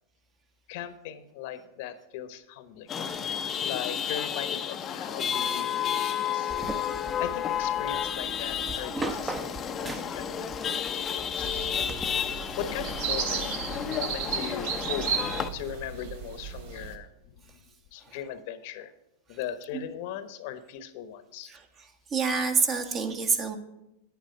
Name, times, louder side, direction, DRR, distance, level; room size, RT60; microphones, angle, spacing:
voice 1, 0.7-2.9 3.2-3.3 3.6-6.5 7.2-11.5 12.6-17.6 17.9-18.9 19.3-21.5, left 9 dB, 60° left, 11 dB, 1.1 m, -39 dB
Chatter / Vehicle horn car horn honking / Traffic noise roadway noise, 2.9-15.5, left 8 dB, 25° left, 0.7 m, -31 dB
sound 1, 6.5-12.0, right 2 dB, 10° right, 1.0 m, -39 dB
sound 2, 11.4-17.0, right 7 dB, 60° right, 1.7 m, -34 dB
voice 2, 22.1-23.6, right 5 dB, 30° right, 6 dB, 1.5 m, -26 dB
9.6 x 9.4 x 5.3 m, 0.88 s
hypercardioid pair, 130°, 0 cm